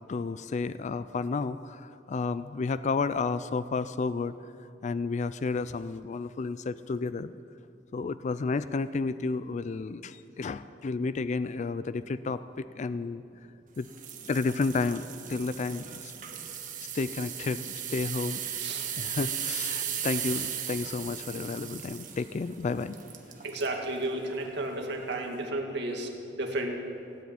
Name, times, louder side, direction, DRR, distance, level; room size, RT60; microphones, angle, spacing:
voice 1, 0.1-4.3 4.8-7.3 7.9-13.2 13.8-13.9 14.3-16.1 16.9-18.4 19.0-23.0, left 4 dB, 40° left, 14 dB, 0.4 m, -31 dB
sound 1, 13.8-23.7 24.3-24.5 25.0-25.1, right 9 dB, 45° right, 1.3 m, -37 dB
voice 2, 23.4-26.7, right 2 dB, 65° right, 2 dB, 2.0 m, -33 dB
17.0 x 8.4 x 9.2 m, 2.8 s
head